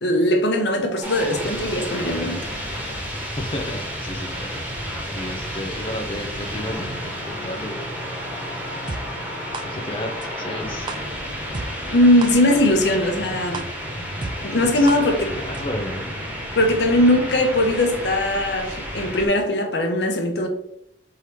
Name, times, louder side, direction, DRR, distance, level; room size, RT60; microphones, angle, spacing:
voice 1, 0.0-2.5 11.9-13.6 14.4-15.3 16.6-20.5, left 1 dB, 65° left, 0.9 m, -20 dB
sound 1, 1.0-19.3, equal, 10° right, 1.5 m, -31 dB
voice 2, 3.4-4.6 5.1-8.1 9.6-10.9 14.6-16.1, left 1 dB, 30° left, 0.5 m, -32 dB
sound 2, 8.9-9.0 9.5-9.6 10.2-10.3 10.9-11.0 11.5-11.7 12.2-12.3 12.9-13.0 13.5-13.6 14.2-14.3 14.9-15.0 15.5-15.6, right 3 dB, 25° right, 0.3 m, -30 dB
3.8 x 3.2 x 4.3 m
head